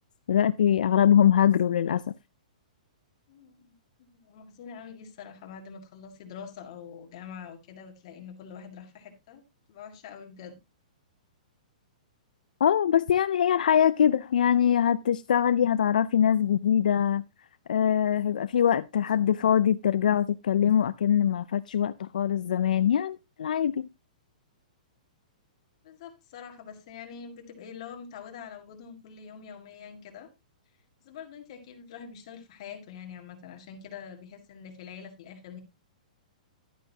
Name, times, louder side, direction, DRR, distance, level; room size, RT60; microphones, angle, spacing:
voice 1, 0.3-2.0 12.6-17.2 17.7-23.9, left 9 dB, 75° left, 0.4 m, -23 dB
voice 2, 3.3-3.7 4.0-9.4 9.7-10.6 25.8-30.3 31.0-35.6, left 7 dB, 40° left, 1.9 m, -45 dB
11.0 x 9.2 x 2.8 m
hypercardioid pair, 170°, 4 cm